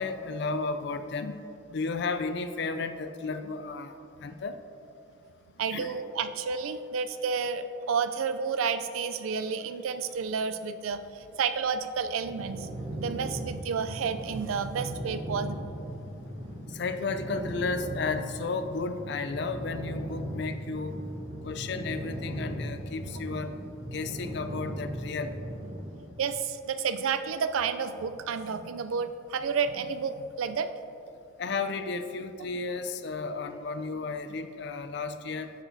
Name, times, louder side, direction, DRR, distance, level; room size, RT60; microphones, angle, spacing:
voice 1, 0.0-1.4 1.7-4.0 4.2-4.6 5.7-5.9 16.7-21.0 21.4-23.5 23.9-25.4 31.4-35.5, left 4 dB, 55° left, 9 dB, 0.4 m, -33 dB
voice 2, 5.6-15.6 26.2-30.7, right 6 dB, 90° right, 11 dB, 0.4 m, -31 dB
sound 1, 12.3-26.1, right 1 dB, 30° right, 0.8 m, -38 dB
8.9 x 6.1 x 2.7 m, 2.7 s
head